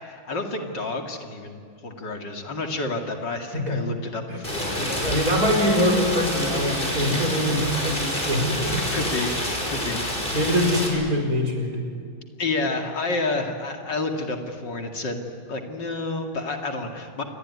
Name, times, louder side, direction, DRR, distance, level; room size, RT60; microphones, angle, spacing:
voice 1, 0.0-5.2 8.9-10.4 12.4-17.2, left 3 dB, 60° left, 4 dB, 2.9 m, -30 dB
Rain, 4.4-10.9, left 1 dB, 25° left, 6.1 m, -28 dB
voice 2, 4.8-8.8 9.9-10.0 10.3-11.8, equal, 45° right, 2 dB, 5.3 m, -24 dB
28.0 x 22.0 x 9.6 m, 2.2 s
omnidirectional pair, 2.1 m